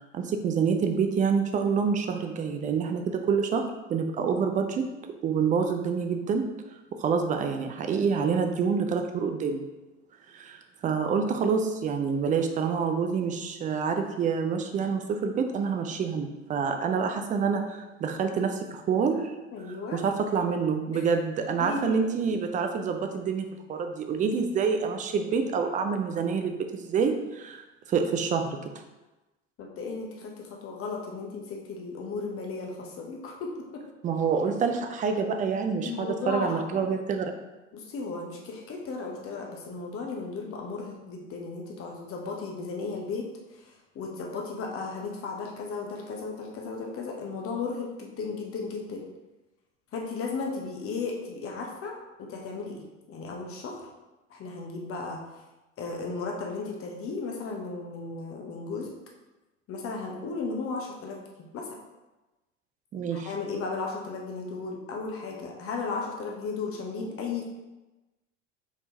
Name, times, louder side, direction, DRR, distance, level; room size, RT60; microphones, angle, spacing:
voice 1, 0.1-4.9 5.2-6.5 7.0-9.6 10.3-19.3 19.9-28.7 34.0-37.3 62.9-63.3, right 6 dB, 20° right, 6 dB, 0.4 m, -27 dB
voice 2, 19.5-20.0 20.9-21.0 21.6-22.1 24.1-24.2 29.6-33.8 35.8-36.7 37.7-49.0 49.9-53.9 54.3-55.2 55.8-58.9 59.7-61.2 61.5-61.8 63.1-67.4, left 4 dB, 35° left, 0 dB, 0.9 m, -35 dB
4.6 x 3.7 x 2.8 m, 1.1 s
figure-of-eight pair, 70°, 38 cm